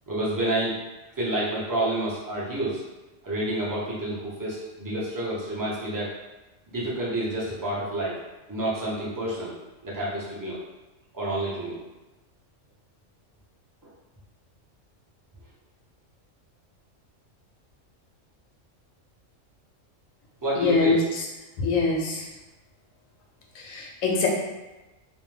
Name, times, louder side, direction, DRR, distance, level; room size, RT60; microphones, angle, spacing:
voice 1, 0.1-0.7 1.2-2.8 3.2-6.1 6.7-8.2 8.5-9.5 9.8-10.6 11.1-11.8 13.8-13.9 20.4-21.0, right 1 dB, 30° right, -7 dB, 0.4 m, -29 dB
voice 2, 20.6-21.0 21.6-22.2 23.6-24.3, left 4 dB, 85° left, -1 dB, 1.0 m, -23 dB
2.5 x 2.1 x 3.1 m, 1.1 s
omnidirectional pair, 1.3 m